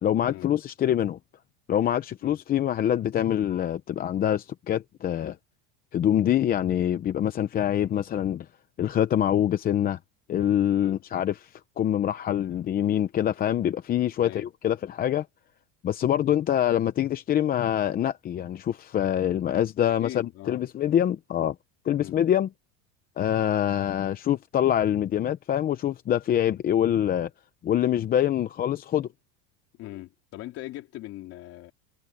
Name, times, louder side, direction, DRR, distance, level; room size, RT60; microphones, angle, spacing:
voice 1, 0.0-1.2 1.7-5.4 5.9-8.5 8.8-10.0 10.3-15.3 15.8-21.5 21.8-22.5 23.2-27.3 27.6-29.1, left 10 dB, 25° left, 0.8 m, -25 dB
voice 2, 10.7-11.0 14.2-14.5 19.9-20.6 22.0-22.2 29.8-31.7, left 15 dB, 45° left, 3.2 m, -40 dB
cardioid pair, 155°, 35 cm